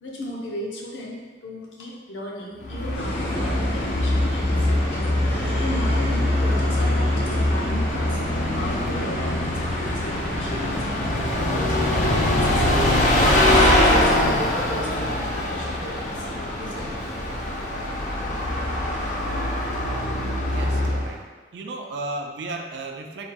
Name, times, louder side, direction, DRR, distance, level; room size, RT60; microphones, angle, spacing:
voice 1, 0.0-4.7 5.6-10.9 11.2-13.0 13.5-16.9, left 1 dB, 90° left, -3 dB, 0.8 m, -35 dB
Bus, 2.6-21.2, left 1 dB, 40° left, 0.4 m, -23 dB
sound 1, 2.9-19.1, equal, 60° left, 1.1 m, -33 dB
voice 2, 20.5-21.2 21.5-23.3, right 2 dB, 70° right, 3 dB, 0.4 m, -34 dB
4.2 x 3.5 x 2.2 m, 1.3 s
head